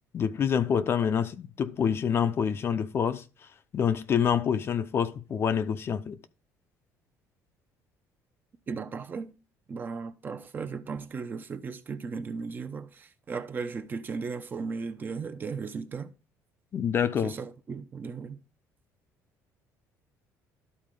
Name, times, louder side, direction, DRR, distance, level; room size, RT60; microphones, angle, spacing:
voice 1, 0.1-3.2 3.7-6.2 16.7-17.3, left 7 dB, 40° left, 0.6 m, -27 dB
voice 2, 8.7-9.3 9.7-16.1 17.2-18.4, right 5 dB, 30° right, 0.8 m, -36 dB
12.5 x 4.3 x 3.8 m
cardioid pair, 130°, 6 cm